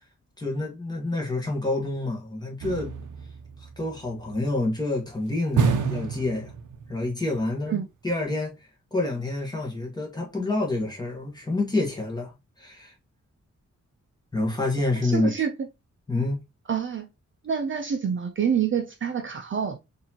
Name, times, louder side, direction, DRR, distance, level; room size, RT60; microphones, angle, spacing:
voice 1, 0.4-3.0 3.8-6.5 6.9-8.6 8.9-12.9 14.3-15.3 16.1-16.4, left 2 dB, 15° left, 1.2 m, -28 dB
sound 1, 2.6-4.3 5.6-7.1 7.4-7.5, right 6 dB, 90° right, 0.6 m, -28 dB
voice 2, 15.0-15.5 16.7-17.1 17.4-19.8, right 7 dB, 40° right, 0.5 m, -27 dB
4.1 x 2.7 x 2.8 m
wide cardioid pair, 175°, 30 cm